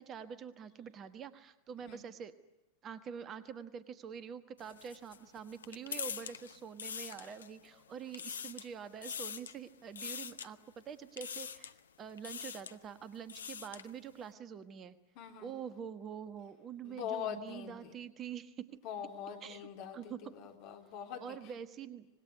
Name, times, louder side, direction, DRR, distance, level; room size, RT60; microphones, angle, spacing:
voice 1, 0.0-2.3 2.8-15.0 15.4-18.8 19.4-20.4 21.2-22.1, right 7 dB, 30° right, 13 dB, 1.2 m, -46 dB
sound 1, 4.6-7.7 8.0-8.7 9.0-9.6 10.0-10.5 11.2-11.8 12.2-12.8 13.1-13.9, left 7 dB, 70° left, 0.8 m, -43 dB
voice 2, 15.2-15.5 16.8-17.9 18.8-21.4, left 8 dB, 45° left, 3 dB, 3.5 m, -43 dB
25.5 x 20.0 x 9.5 m, 0.96 s
figure-of-eight pair, 90°, 0 cm